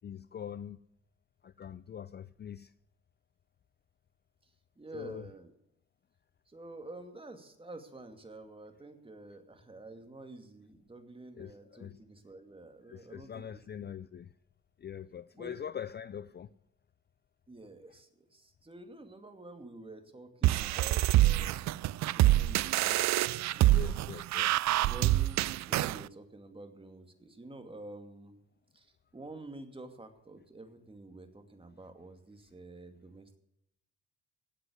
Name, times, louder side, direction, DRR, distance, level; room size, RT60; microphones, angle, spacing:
voice 1, 0.0-0.8 1.4-2.7 4.9-5.3 11.4-12.0 12.9-14.3 14.8-16.5 23.7-24.5, left 8 dB, 35° left, 0.5 m, -43 dB
voice 2, 4.8-5.5 6.5-13.6 15.3-15.6 17.5-24.0 24.8-28.4 28.7-33.4, right 2 dB, 20° right, 2.4 m, -49 dB
sound 1, 20.4-26.0, right 16 dB, 65° right, 0.4 m, -26 dB
17.5 x 7.9 x 8.0 m
cardioid pair, 90°, 30 cm